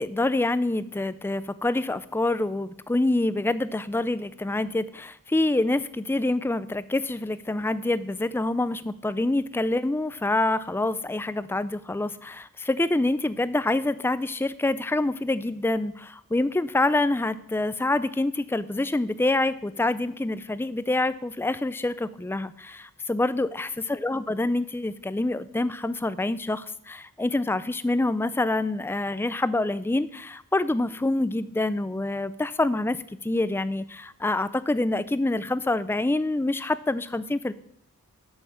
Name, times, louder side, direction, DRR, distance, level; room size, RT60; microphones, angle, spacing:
voice 1, 0.0-33.0 33.2-37.5, left 2 dB, 10° left, 15 dB, 0.3 m, -26 dB
8.4 x 6.4 x 6.8 m, 0.73 s
head